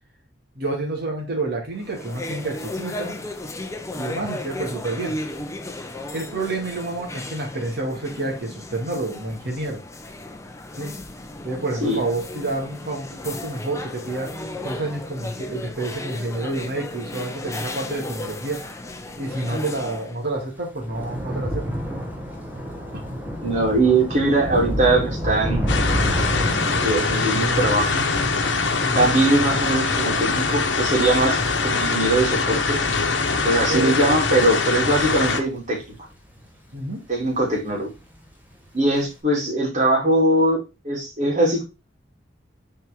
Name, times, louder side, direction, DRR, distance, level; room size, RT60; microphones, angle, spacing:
voice 1, 0.6-3.2 4.0-5.2 6.1-9.8 10.8-10.9 11.4-14.3 14.6-18.7 19.2-21.7 22.9-23.2 28.8-29.1 33.7-34.0 34.3-34.5 36.7-37.0, right 2 dB, 60° right, 0 dB, 2.2 m, -29 dB
sound 1, 1.8-20.2, left 1 dB, 15° left, 0.8 m, -35 dB
Thunder / Rain, 20.3-36.9 37.2-37.7 38.0-38.1, equal, 10° right, 1.4 m, -31 dB
voice 2, 23.4-25.6 26.8-28.0 28.9-31.4 31.6-32.8 33.4-35.8 37.1-37.9 38.7-40.6 40.8-41.6, right 2 dB, 40° right, -3 dB, 3.2 m, -21 dB
sound 2, 25.7-35.4, left 4 dB, 70° left, 1.1 m, -23 dB
6.3 x 4.6 x 3.7 m, 0.27 s
head